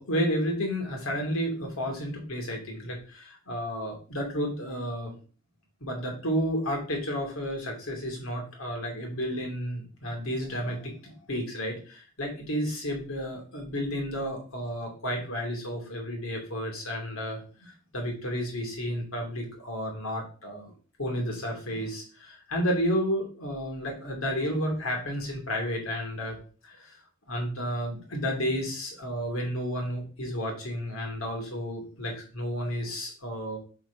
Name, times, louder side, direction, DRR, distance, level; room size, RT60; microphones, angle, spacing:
voice 1, 0.0-5.1 5.8-20.7 21.0-26.4 26.6-26.9 27.3-33.6, equal, 85° left, 1 dB, 3.1 m, -32 dB
6.1 x 4.7 x 6.1 m, 0.38 s
head